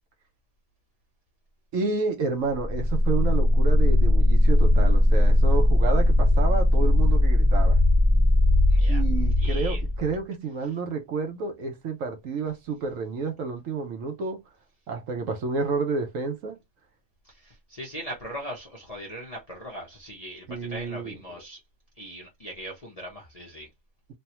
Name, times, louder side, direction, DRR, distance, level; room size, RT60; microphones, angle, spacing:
voice 1, 1.7-7.8 8.9-14.4 14.9-16.6 20.5-21.2, right 4 dB, 65° right, 1.0 m, -30 dB
sound 1, 2.6-10.2, left 1 dB, 35° right, 0.7 m, -19 dB
voice 2, 8.7-9.0 9.4-9.8 10.6-10.7 17.2-21.6 22.0-23.7, equal, 35° left, 0.7 m, -40 dB
3.3 x 2.2 x 2.9 m
omnidirectional pair, 1.6 m